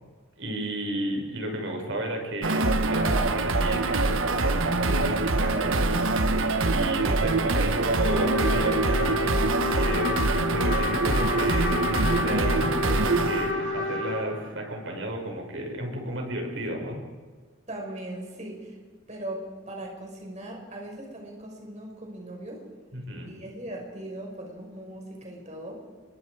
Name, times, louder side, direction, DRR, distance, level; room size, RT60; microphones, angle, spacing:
voice 1, 0.4-6.4 6.7-10.1 10.5-17.0 22.9-23.3, right 1 dB, 65° right, 2 dB, 5.8 m, -33 dB
sound 1, 2.4-14.5, right 3 dB, 80° right, 1.3 m, -24 dB
Trumpet, 8.0-14.2, left 3 dB, 60° left, 5.6 m, -30 dB
voice 2, 9.8-10.3 17.7-18.8 19.1-22.6 23.3-25.8, right 1 dB, 35° right, 0 dB, 5.5 m, -39 dB
28.5 x 23.5 x 5.0 m, 1.5 s
head